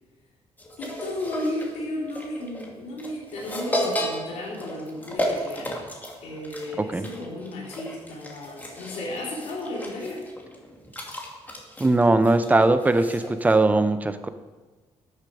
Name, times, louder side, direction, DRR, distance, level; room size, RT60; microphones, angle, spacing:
sound 1, 0.6-13.6, equal, 15° left, 2.4 m, -34 dB
voice 1, 0.8-5.9 6.2-10.3, left 1 dB, 85° left, -4 dB, 3.9 m, -34 dB
voice 2, 11.8-14.3, right 2 dB, 15° right, 10 dB, 0.8 m, -20 dB
13.0 x 10.0 x 5.0 m, 1.3 s
cardioid pair, 120°, 11 cm